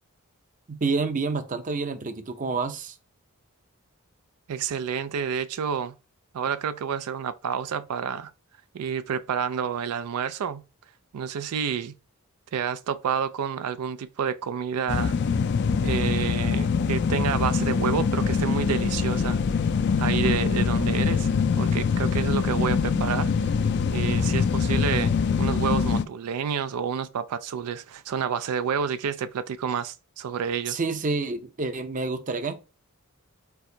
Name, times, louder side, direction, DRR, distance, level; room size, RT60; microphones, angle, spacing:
voice 1, 0.7-2.9 30.7-32.6, right 4 dB, 35° right, 0.5 m, -28 dB
voice 2, 4.5-5.9 6.3-8.3 8.7-10.6 11.1-11.9 12.5-15.1 15.8-19.4 20.0-21.3 21.6-23.3 23.9-30.8, right 7 dB, 90° right, 0.4 m, -29 dB
sound 1, 14.9-26.0, left 5 dB, 50° left, 0.3 m, -24 dB
4.6 x 4.3 x 2.7 m
head